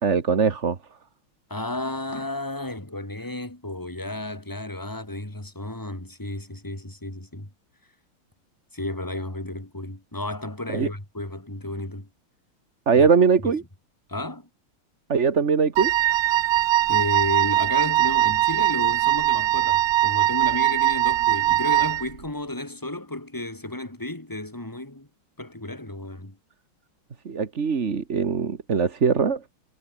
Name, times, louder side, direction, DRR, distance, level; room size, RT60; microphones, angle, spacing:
voice 1, 0.0-0.8 10.7-10.9 12.9-13.6 15.1-15.9 27.2-29.4, right 5 dB, 35° right, 1.7 m, -21 dB
voice 2, 1.5-7.5 8.7-12.1 12.9-13.1 13.4-13.5 14.1-14.5 16.9-25.1 25.4-26.4, left 1 dB, 10° left, 3.6 m, -32 dB
Wind instrument woodwind instrument, 15.8-22.1, right 14 dB, 90° right, 0.8 m, -21 dB
omnidirectional pair, 2.3 m